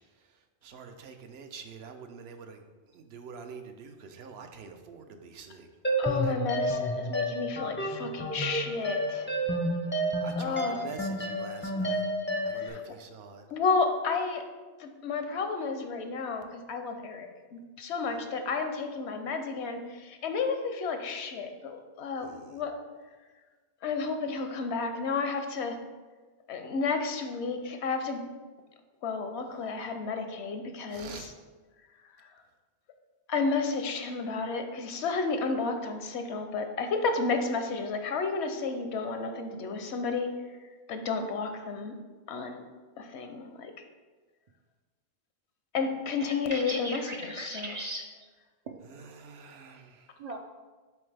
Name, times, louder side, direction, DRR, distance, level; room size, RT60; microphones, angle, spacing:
voice 1, 0.6-2.6 2.9-5.7 6.2-6.3 10.2-12.0 12.4-13.4 22.2-22.5 30.9-31.3 48.9-50.1, right 5 dB, 75° right, 6 dB, 0.9 m, -45 dB
sound 1, 5.8-12.7, equal, 20° left, 0.3 m, -30 dB
voice 2, 6.0-9.3 10.3-10.8 12.5-13.0 13.5-14.4 14.8-22.7 23.8-25.8 26.5-28.2 29.0-31.3 32.2-32.3 33.3-40.3 40.9-42.0 42.3-42.6 43.0-43.7 45.7-47.7, left 4 dB, 85° left, 6 dB, 1.0 m, -32 dB
voice 3, 46.2-48.3 48.7-48.8 50.2-50.4, right 1 dB, 55° right, 2 dB, 0.4 m, -38 dB
7.7 x 3.9 x 3.3 m, 1.4 s
omnidirectional pair, 1.1 m